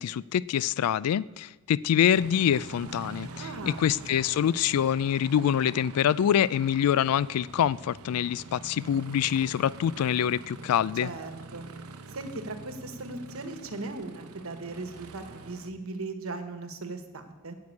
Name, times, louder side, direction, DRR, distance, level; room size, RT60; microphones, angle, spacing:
voice 1, 0.0-11.1, left 9 dB, 85° left, 21 dB, 0.3 m, -25 dB
Aircraft, 2.1-15.7, right 3 dB, 90° right, 0.8 m, -44 dB
voice 2, 3.4-3.9 11.0-11.6 12.1-17.5, right 2 dB, 70° right, 7 dB, 1.2 m, -38 dB
9.5 x 7.9 x 8.5 m, 1.2 s
head